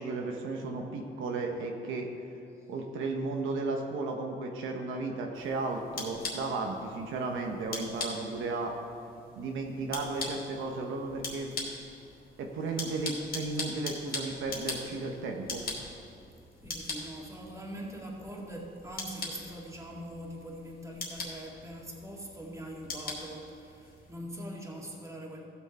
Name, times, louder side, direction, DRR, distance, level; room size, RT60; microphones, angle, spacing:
voice 1, 0.0-2.1 2.7-8.7 9.4-11.5 12.4-15.6, right 3 dB, 80° right, 2 dB, 1.1 m, -34 dB
sound 1, 5.3-24.1, left 3 dB, 45° left, 2.8 m, -42 dB
voice 2, 16.6-25.4, equal, 15° right, -2 dB, 2.2 m, -43 dB
15.5 x 6.4 x 4.3 m, 2.7 s
cardioid pair, 90°, 20 cm